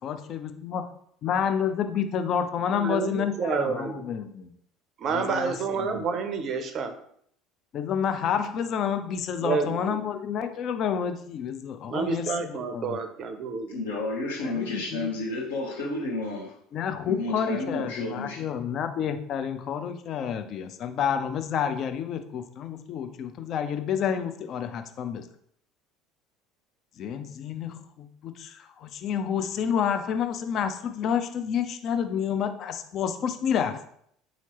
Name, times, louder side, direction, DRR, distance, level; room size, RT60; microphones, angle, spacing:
voice 1, 0.0-0.9 1.2-4.5 5.1-6.0 7.7-13.0 14.4-15.1 16.7-25.3 27.0-33.8, left 8 dB, 45° left, 7 dB, 0.4 m, -29 dB
voice 2, 2.7-4.0 5.0-6.9 9.4-10.0 11.9-13.8, right 5 dB, 40° right, 8 dB, 0.5 m, -29 dB
voice 3, 13.7-16.5 17.0-18.5, left 2 dB, 70° left, -2 dB, 0.9 m, -31 dB
3.8 x 2.8 x 2.9 m, 0.68 s
figure-of-eight pair, 65°, 0 cm